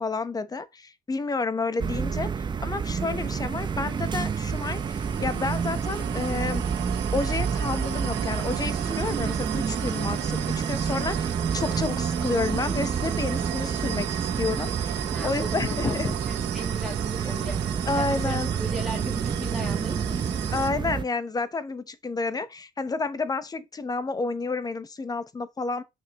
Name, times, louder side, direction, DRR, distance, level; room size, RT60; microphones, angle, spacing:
voice 1, 0.0-2.3 2.6-6.6 7.1-16.2 17.9-18.5 20.5-25.8, left 3 dB, 20° left, 0.9 m, -30 dB
sound 1, 1.8-21.0, right 6 dB, 25° right, 0.6 m, -29 dB
sound 2, 2.7-20.7, right 13 dB, 85° right, 0.9 m, -35 dB
voice 2, 15.1-17.7 17.9-20.3, right 1 dB, ahead, 1.8 m, -37 dB
7.0 x 5.9 x 3.0 m
cardioid pair, 110°, 17 cm